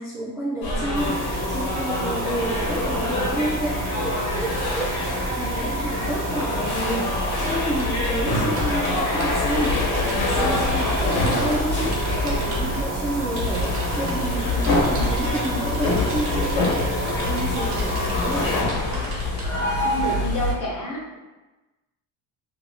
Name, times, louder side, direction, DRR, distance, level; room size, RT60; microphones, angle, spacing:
voice 1, 0.0-16.9 17.3-18.5, right 1 dB, 10° right, -11 dB, 0.3 m, -30 dB
sound 1, 0.6-20.5, left 1 dB, 70° left, 1.1 m, -26 dB
sound 2, 0.9-18.6, right 1 dB, 50° right, 0.6 m, -30 dB
sound 3, 7.6-19.5, left 4 dB, 70° right, 1.0 m, -30 dB
voice 2, 19.8-21.2, left 1 dB, 45° left, -3 dB, 0.8 m, -29 dB
2.8 x 2.2 x 2.7 m, 1.1 s
cardioid pair, 160°, 43 cm